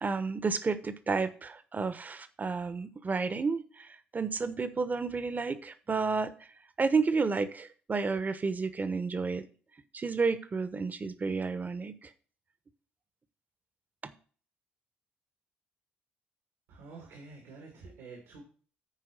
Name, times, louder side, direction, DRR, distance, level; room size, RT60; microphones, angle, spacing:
voice 1, 0.0-3.6 4.1-6.3 6.8-9.4 9.9-11.9 14.0-14.1, right 4 dB, 35° right, 12 dB, 1.0 m, -31 dB
voice 2, 16.7-18.4, right 4 dB, 80° right, -1 dB, 2.5 m, -48 dB
10.0 x 4.7 x 6.3 m, 0.42 s
hypercardioid pair, 50°, 5 cm